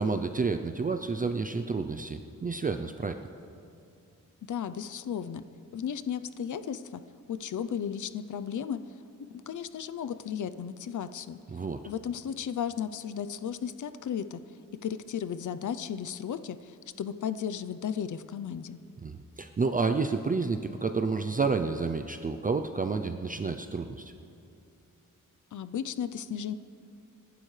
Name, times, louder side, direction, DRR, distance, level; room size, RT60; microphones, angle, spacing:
voice 1, 0.0-3.2 11.5-11.8 19.0-24.1, right 4 dB, 25° right, 7 dB, 0.5 m, -30 dB
voice 2, 4.5-5.4 5.7-7.0 7.3-8.8 9.5-11.4 11.9-14.4 14.8-18.8 25.5-26.5, left 8 dB, 65° left, 12 dB, 0.6 m, -34 dB
28.0 x 12.0 x 3.3 m, 2.5 s
wide cardioid pair, 150°, 32 cm